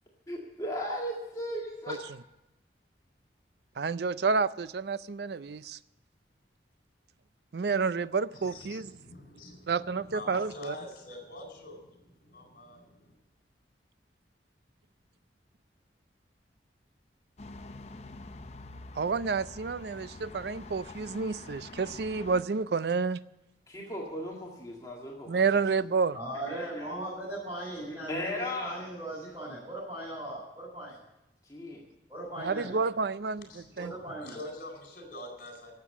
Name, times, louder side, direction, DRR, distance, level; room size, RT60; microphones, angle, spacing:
voice 1, 0.3-2.1 23.7-25.4 26.5-26.9 28.1-28.9 31.5-31.8, left 1 dB, 20° left, 1.9 m, -36 dB
voice 2, 3.8-5.8 7.5-8.9 9.7-10.7 18.9-23.2 25.3-26.2 32.4-33.9, right 5 dB, 60° right, 0.4 m, -29 dB
voice 3, 8.3-13.1 33.4-35.7, left 1 dB, 50° left, 4.2 m, -45 dB
sound 1, 17.4-22.4, left 2 dB, 35° left, 0.6 m, -46 dB
voice 4, 26.1-31.0 32.1-32.7 33.8-34.4, right 1 dB, 10° right, 5.7 m, -38 dB
12.5 x 7.7 x 9.9 m
head